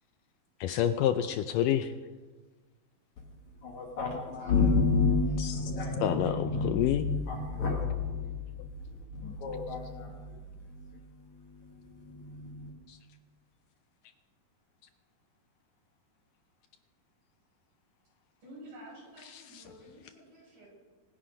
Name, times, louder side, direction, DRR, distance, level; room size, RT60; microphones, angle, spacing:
voice 1, 0.6-1.9 5.4-5.6 6.0-7.1 12.9-13.0 19.3-19.6, left 11 dB, 85° left, 9 dB, 1.9 m, -28 dB
voice 2, 3.4-12.7, left 4 dB, 55° left, -1 dB, 2.7 m, -31 dB
voice 3, 4.4-4.9 5.2-5.9 18.4-20.7, right 1 dB, 55° right, -4 dB, 7.9 m, -51 dB
25.5 x 9.9 x 5.2 m, 1.3 s
omnidirectional pair, 4.4 m